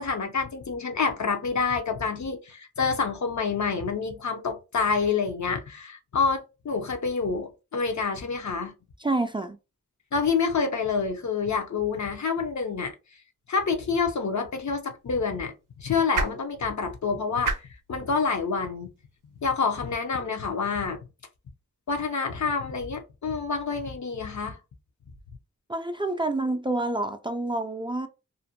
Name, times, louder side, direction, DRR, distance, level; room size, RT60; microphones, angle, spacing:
voice 1, 0.0-8.7 10.1-12.9 13.5-15.5 15.8-18.9 19.4-21.0 21.9-24.6, left 5 dB, 65° left, 0.6 m, -27 dB
voice 2, 9.0-9.6 25.7-28.1, right 2 dB, 15° right, 0.3 m, -28 dB
sound 1, 14.3-20.6, right 4 dB, 85° right, 0.5 m, -38 dB
2.5 x 2.1 x 2.7 m
cardioid pair, 45°, 31 cm